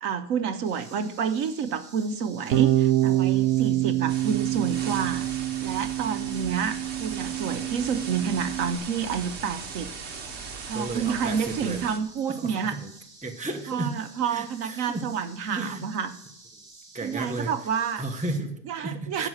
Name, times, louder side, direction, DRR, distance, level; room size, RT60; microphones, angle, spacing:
voice 1, 0.0-5.3 5.6-9.9 10.7-12.8 13.7-16.1 17.0-18.0 18.7-19.3, right 7 dB, 70° right, 9 dB, 1.1 m, -29 dB
sound 1, 0.6-18.4, right 3 dB, 30° right, 1.8 m, -50 dB
Bass guitar, 2.5-8.8, right 14 dB, 85° right, 1.2 m, -26 dB
sound 2, 4.1-12.0, right 5 dB, 55° right, 1.3 m, -39 dB
voice 2, 10.7-11.8 12.3-12.9 13.2-13.9 14.3-15.0 15.4-15.8 16.9-17.5 18.0-19.3, right 2 dB, 5° right, 4 dB, 1.0 m, -33 dB
12.0 x 7.8 x 6.4 m, 0.70 s
omnidirectional pair, 1.5 m